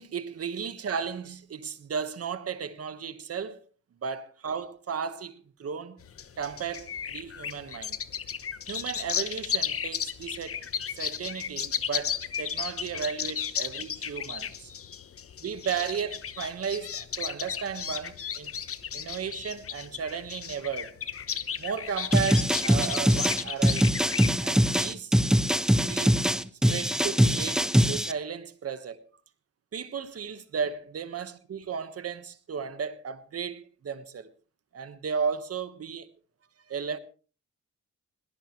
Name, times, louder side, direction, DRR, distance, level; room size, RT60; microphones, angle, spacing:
voice 1, 0.0-3.6 4.0-6.0 6.4-8.0 8.7-10.6 10.9-14.7 15.4-18.5 18.9-20.9 21.6-23.9 24.4-25.2 25.6-26.2 26.7-29.0 29.7-34.3 34.7-36.0 36.7-37.0, right 6 dB, 55° right, 1.5 m, -34 dB
sound 1, 6.0-24.5, left 8 dB, 50° left, 1.0 m, -34 dB
sound 2, 22.1-28.1, equal, ahead, 0.7 m, -23 dB
21.5 x 18.0 x 3.2 m
cardioid pair, 115°, 30 cm